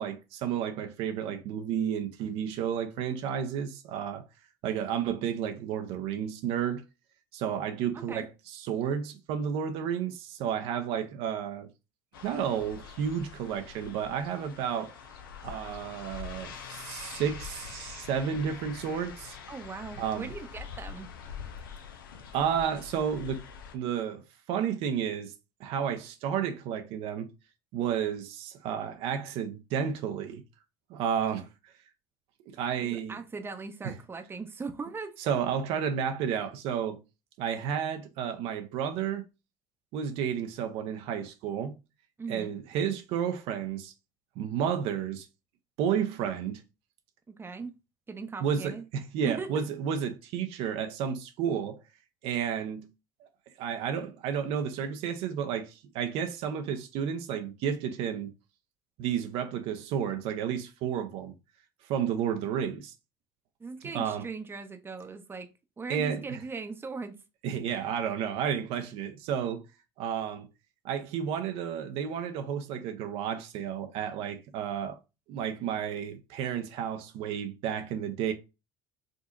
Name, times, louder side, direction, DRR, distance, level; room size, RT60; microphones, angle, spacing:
voice 1, 0.0-4.2 4.6-6.8 7.3-11.7 12.2-14.9 15.4-19.4 20.0-20.3 22.3-23.5 23.7-24.2 24.5-25.3 25.6-27.3 27.7-30.4 30.9-31.7 32.5-33.2 33.8-33.9 35.2-37.0 37.4-39.3 39.9-41.7 42.3-43.9 44.4-45.3 45.8-46.6 48.4-51.8 52.2-52.9 53.6-58.3 59.0-61.3 61.8-62.9 63.9-64.3 65.9-66.4 67.4-69.6 70.0-70.5 70.8-75.0 75.3-78.3, right 8 dB, 60° right, 0.6 m, -31 dB
voice 2, 7.9-8.3 19.5-21.1 32.8-35.2 42.2-42.6 47.3-47.8 48.1-48.8 49.2-49.6 63.6-65.5 65.8-67.2, right 4 dB, 20° right, 0.7 m, -39 dB
sound 1, 12.1-23.7, left 7 dB, 80° left, 0.6 m, -45 dB
5.0 x 2.8 x 2.5 m
hypercardioid pair, 70°, 11 cm